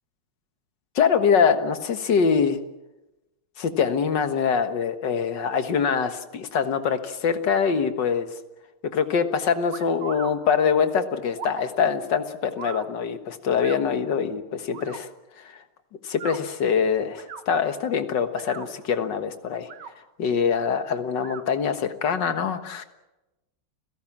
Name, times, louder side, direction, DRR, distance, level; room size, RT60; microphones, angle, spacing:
voice 1, 1.0-2.6 3.6-8.4 8.9-15.1 15.4-15.6 16.0-19.7 20.2-22.8, left 6 dB, 60° left, 8 dB, 2.0 m, -24 dB
sound 1, 9.7-10.3 11.3-11.6 12.6-12.9 13.6-13.8 14.7-15.0 16.1-16.4 17.1-17.4 18.3-18.7 19.6-19.9 21.2-21.4, right 6 dB, 55° right, 2.1 m, -38 dB
29.5 x 17.0 x 7.4 m, 1.0 s
omnidirectional pair, 2.3 m